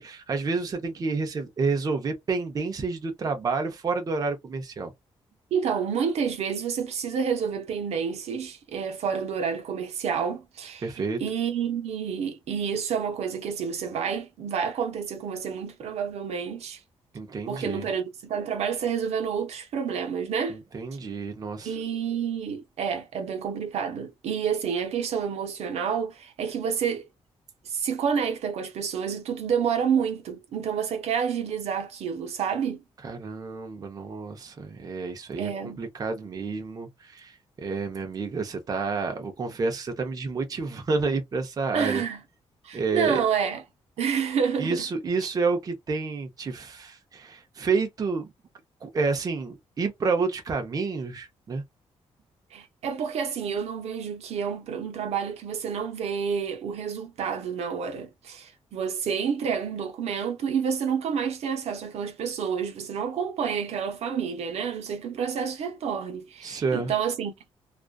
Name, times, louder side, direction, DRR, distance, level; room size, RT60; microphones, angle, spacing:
voice 1, 0.0-4.9 10.8-11.2 17.1-17.9 20.5-21.8 33.0-42.0 42.7-43.2 44.6-48.3 48.8-51.6 66.4-66.9, right 4 dB, 35° right, 0.6 m, -29 dB
voice 2, 5.5-16.8 17.5-20.6 21.6-27.1 27.7-32.8 35.4-35.8 41.7-42.2 42.6-43.6 44.0-44.9 52.5-67.3, right 7 dB, 75° right, 0.8 m, -29 dB
2.4 x 2.3 x 2.2 m
cardioid pair, 110°, 11 cm